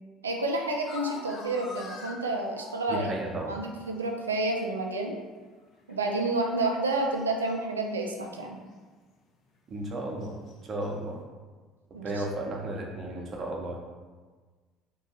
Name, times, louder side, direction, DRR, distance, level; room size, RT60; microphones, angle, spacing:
voice 1, 0.2-3.1 3.5-5.1 5.9-8.6 11.9-12.2, right 2 dB, 90° right, 2 dB, 0.3 m, -30 dB
sound 1, 0.8-3.1 4.0-4.1 5.9-6.2 6.5-6.6 6.9-7.5 10.2-10.9, left 3 dB, 50° left, 0.5 m, -43 dB
voice 2, 2.9-3.5 9.7-10.3 10.6-11.2 11.9-13.8, right 1 dB, 40° right, 0 dB, 0.7 m, -34 dB
2.6 x 2.2 x 4.0 m, 1.4 s
hypercardioid pair, 60°, 0 cm